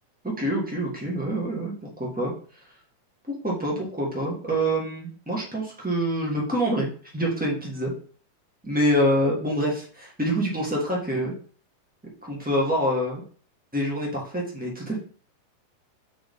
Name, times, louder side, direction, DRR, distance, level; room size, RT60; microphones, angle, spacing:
voice 1, 0.4-2.3 3.3-6.9 7.1-7.9 8.6-11.3 12.2-13.2 13.7-15.0, equal, 10° right, -3 dB, 0.4 m, -26 dB
8.6 x 4.0 x 3.7 m, 0.43 s
omnidirectional pair, 3.7 m